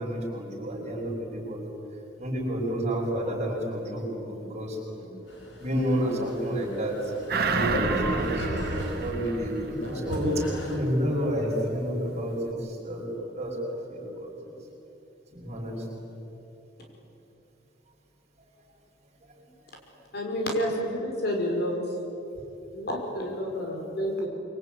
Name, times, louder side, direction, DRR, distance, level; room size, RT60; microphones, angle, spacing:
voice 1, 0.0-1.6 2.2-5.1 5.6-8.5 8.9-10.4 10.7-14.5 15.3-15.8 19.2-19.3, equal, 40° right, -3 dB, 6.9 m, -30 dB
sound 1, 5.3-10.8, equal, 80° left, 6.3 m, -35 dB
sound 2, 7.3-10.2 10.6-10.7, right 4 dB, 55° right, 2.1 m, -30 dB
voice 2, 20.1-21.7 22.7-24.3, equal, 60° left, 1 dB, 5.6 m, -29 dB
25.5 x 24.0 x 9.6 m, 2.9 s
head